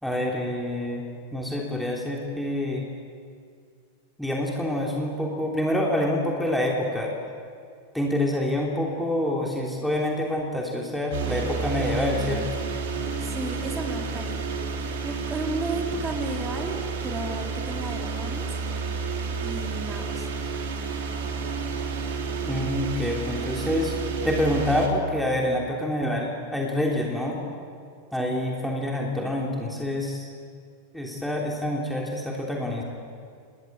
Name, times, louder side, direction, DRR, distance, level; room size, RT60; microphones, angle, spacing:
voice 1, 0.0-1.0 1.3-2.8 4.2-7.2 7.9-12.6 22.4-24.0 24.2-27.4 28.1-30.3 30.9-32.8, left 1 dB, ahead, -2 dB, 3.3 m, -27 dB
sound 1, 11.1-24.9, right 4 dB, 55° right, 3.6 m, -30 dB
voice 2, 13.2-14.5 14.7-18.5 19.4-20.3 28.2-28.3, right 3 dB, 15° right, 2 dB, 3.8 m, -33 dB
29.0 x 20.0 x 8.6 m, 2.3 s
figure-of-eight pair, 90°, 0 cm